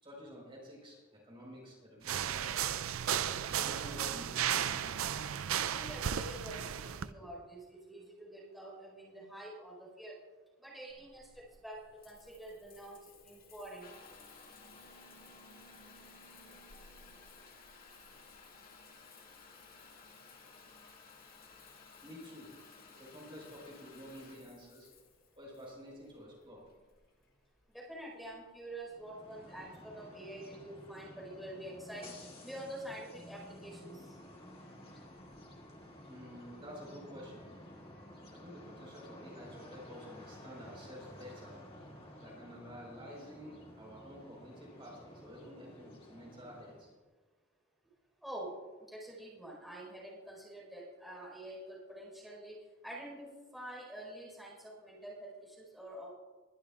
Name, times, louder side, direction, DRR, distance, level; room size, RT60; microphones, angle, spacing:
voice 1, 0.0-2.5 3.5-5.0 22.0-22.5 23.0-24.9 25.4-26.6 36.0-37.5 38.3-41.7 42.2-46.9, equal, 25° right, -3 dB, 4.6 m, -50 dB
sound 1, 2.0-7.1, right 9 dB, 85° right, 0.5 m, -34 dB
voice 2, 5.6-10.2 10.6-13.9 27.7-34.1 48.2-53.3 53.5-56.1, right 1 dB, ahead, -5 dB, 4.6 m, -47 dB
Water tap faucet / Bathtub (filling or washing) / Trickle dribble, 10.9-29.8, left 4 dB, 45° left, 2.1 m, -57 dB
sound 2, 28.9-47.0, left 1 dB, 30° left, 2.4 m, -53 dB
21.5 x 12.0 x 2.5 m, 1.3 s
head